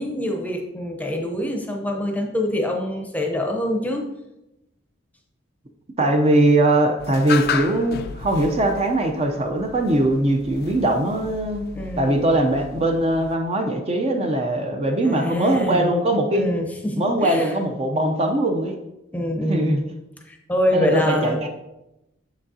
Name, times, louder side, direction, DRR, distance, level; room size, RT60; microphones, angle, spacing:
voice 1, 0.0-4.1 11.7-12.3 15.0-15.9 16.3-17.5 19.1-19.8 20.3-21.5, left 1 dB, 10° left, 2 dB, 0.7 m, -25 dB
voice 2, 6.0-11.7 12.0-16.5 17.0-18.8 19.5-19.8 20.7-21.5, right 1 dB, 30° right, 3 dB, 0.6 m, -21 dB
sound 1, 7.0-13.4, left 7 dB, 50° left, 0.4 m, -34 dB
7.0 x 6.1 x 2.7 m, 0.92 s
head